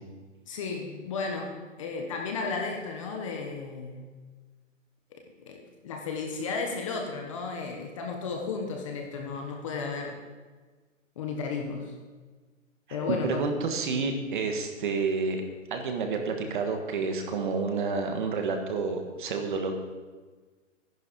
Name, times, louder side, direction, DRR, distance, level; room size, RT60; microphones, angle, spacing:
voice 1, 0.5-4.1 5.1-10.3 11.2-11.9 12.9-13.5, left 4 dB, 25° left, 2 dB, 1.1 m, -34 dB
voice 2, 13.1-15.4 15.7-19.7, right 4 dB, 40° right, 4 dB, 1.6 m, -29 dB
12.5 x 11.0 x 5.2 m, 1.4 s
hypercardioid pair, 170°, 39 cm